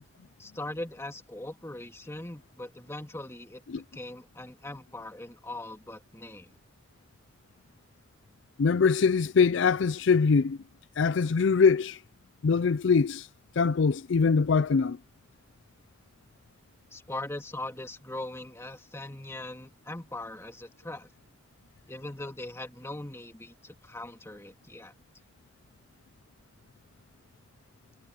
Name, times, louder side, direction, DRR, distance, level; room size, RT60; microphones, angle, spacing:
voice 1, 0.4-6.5 16.9-21.1 21.9-24.9, left 1 dB, 15° left, 2.1 m, -40 dB
voice 2, 8.6-10.6 11.0-12.0 12.4-13.3 13.6-15.0, left 5 dB, 65° left, 0.4 m, -23 dB
head